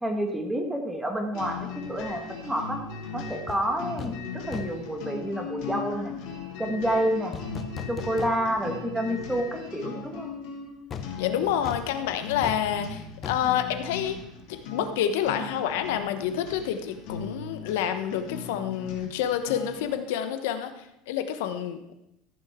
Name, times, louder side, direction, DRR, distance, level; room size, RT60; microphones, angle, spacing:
voice 1, 0.0-2.8 3.1-6.2 6.6-7.4 7.9-10.3, right 1 dB, 5° right, 3 dB, 1.5 m, -29 dB
sound 1, 1.3-19.9, left 5 dB, 65° left, 3.0 m, -38 dB
sound 2, 3.5-3.6 4.0-4.2 4.5-4.9 7.3-8.8 9.1-9.2 10.9-14.6 14.8-15.0, left 7 dB, 25° left, 0.9 m, -39 dB
voice 2, 11.2-14.2 14.7-21.9, left 9 dB, 80° left, 9 dB, 1.0 m, -28 dB
14.5 x 8.9 x 3.7 m, 0.83 s
cardioid pair, 150°, 0 cm